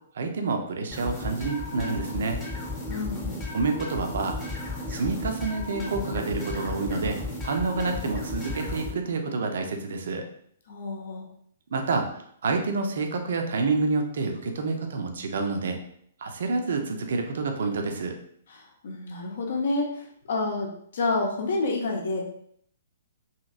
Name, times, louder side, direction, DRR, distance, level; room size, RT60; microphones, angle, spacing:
voice 1, 0.1-2.4 3.5-4.4 4.9-10.2 11.7-15.8 16.2-18.2, right 3 dB, 55° right, 4 dB, 0.4 m, -28 dB
sound 1, 0.9-8.9, left 2 dB, 20° left, 0.8 m, -34 dB
voice 2, 2.9-3.4 10.7-11.3 18.5-22.3, left 3 dB, 55° left, 1 dB, 0.6 m, -29 dB
2.8 x 2.8 x 2.4 m, 0.66 s
figure-of-eight pair, 115°, 0 cm